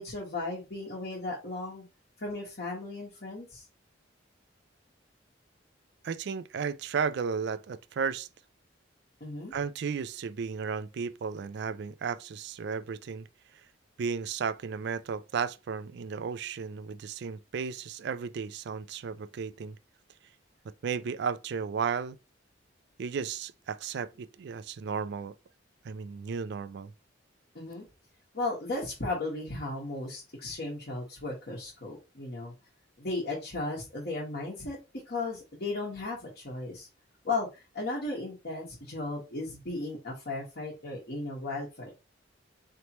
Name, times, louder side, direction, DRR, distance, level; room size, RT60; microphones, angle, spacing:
voice 1, 0.0-1.8 2.2-3.6 9.2-9.6 27.5-27.8 28.3-32.5 33.0-34.8 35.1-36.9 37.2-41.9, left 2 dB, 55° left, 1.3 m, -35 dB
voice 2, 6.0-8.3 9.5-13.3 13.5-13.6 14.0-19.8 20.8-22.2 23.0-25.3 25.8-26.9, right 6 dB, 60° right, 0.3 m, -34 dB
4.2 x 3.2 x 2.9 m
head